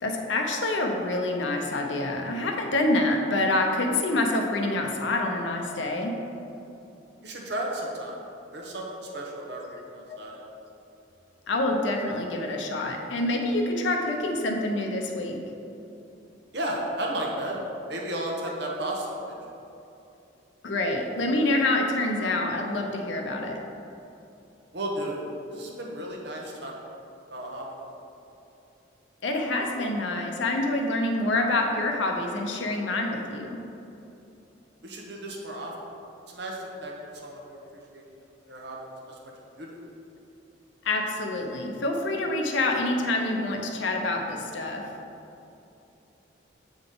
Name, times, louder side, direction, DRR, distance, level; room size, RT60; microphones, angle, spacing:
voice 1, 0.0-6.2 10.1-10.2 11.5-15.4 20.6-23.6 29.2-33.6 40.8-44.9, left 2 dB, 70° left, 2 dB, 0.6 m, -27 dB
voice 2, 7.2-8.2 8.5-8.9 9.1-10.4 16.5-17.6 17.9-19.4 24.7-25.2 25.5-26.7 27.3-27.6 34.8-35.7 36.3-36.9 37.2-37.6 37.9-38.0 38.5-38.8 39.0-39.2 39.6-39.8, right 1 dB, 55° right, -1 dB, 0.9 m, -33 dB
7.9 x 3.9 x 3.8 m, 2.9 s
head